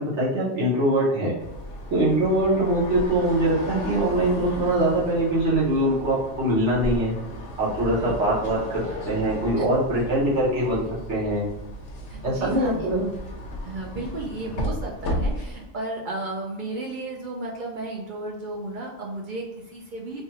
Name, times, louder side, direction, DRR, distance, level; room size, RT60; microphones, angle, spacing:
voice 1, 0.0-1.3 1.9-7.2 7.6-10.8 11.1-11.5 12.2-13.1, right 1 dB, 70° right, -7 dB, 1.2 m, -23 dB
sound 1, 1.4-15.7, equal, 85° left, 1.0 m, -34 dB
voice 2, 12.1-12.9 13.6-20.2, right 2 dB, 55° right, -2 dB, 0.6 m, -33 dB
3.4 x 2.2 x 2.8 m, 0.98 s
omnidirectional pair, 1.3 m